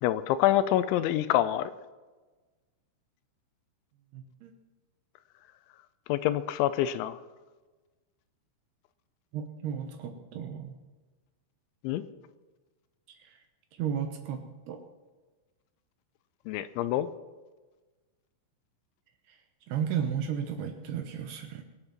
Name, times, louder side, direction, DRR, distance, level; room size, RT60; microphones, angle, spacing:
voice 1, 0.0-1.7 6.1-7.2 11.8-12.0 16.5-17.1, left 13 dB, 80° left, 13 dB, 2.9 m, -26 dB
voice 2, 4.1-4.5 9.3-10.7 13.2-13.4 13.8-14.8 19.3-19.4 19.7-21.6, right 8 dB, 70° right, 5 dB, 2.7 m, -34 dB
22.5 x 8.1 x 5.9 m, 1.3 s
omnidirectional pair, 5.5 m